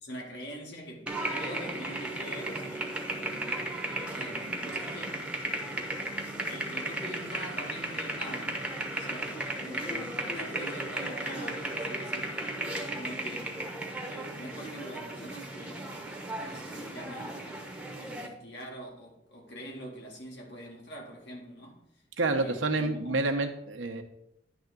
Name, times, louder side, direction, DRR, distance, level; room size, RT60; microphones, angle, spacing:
voice 1, 0.0-3.7 4.1-5.2 5.6-5.9 6.5-8.6 8.9-12.5 12.9-13.6 14.1-16.1 16.4-17.6 18.0-21.8 22.2-23.2, equal, 60° left, 2.3 m, -44 dB
sound 1, 1.1-18.3, right 1 dB, 5° right, 1.0 m, -35 dB
voice 2, 22.2-24.0, right 2 dB, 85° right, 1.0 m, -28 dB
10.5 x 3.6 x 6.7 m
head